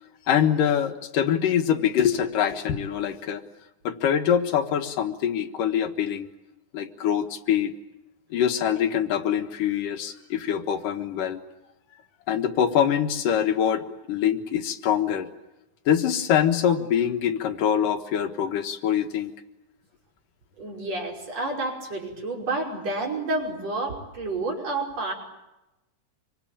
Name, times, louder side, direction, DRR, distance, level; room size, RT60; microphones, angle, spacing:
voice 1, 0.3-3.4 3.8-6.3 6.7-7.7 8.3-11.4 12.3-15.3 15.9-19.3, left 9 dB, 85° left, 7 dB, 3.1 m, -24 dB
voice 2, 20.6-25.1, right 2 dB, 50° right, 0 dB, 6.7 m, -29 dB
26.0 x 24.5 x 8.8 m, 0.97 s
omnidirectional pair, 3.7 m